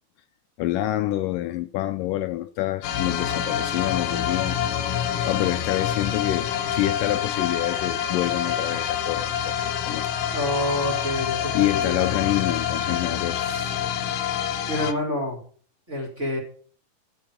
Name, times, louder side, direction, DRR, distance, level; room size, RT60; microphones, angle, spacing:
voice 1, 0.6-4.6 5.3-10.1 11.5-13.5, left 15 dB, 90° left, 1.9 m, -27 dB
sound 1, 2.8-14.9, left 9 dB, 70° left, 2.2 m, -27 dB
voice 2, 10.3-12.3 13.4-13.7 14.7-15.4 15.9-16.4, left 1 dB, 15° right, 4.6 m, -28 dB
13.0 x 7.9 x 5.2 m
omnidirectional pair, 4.5 m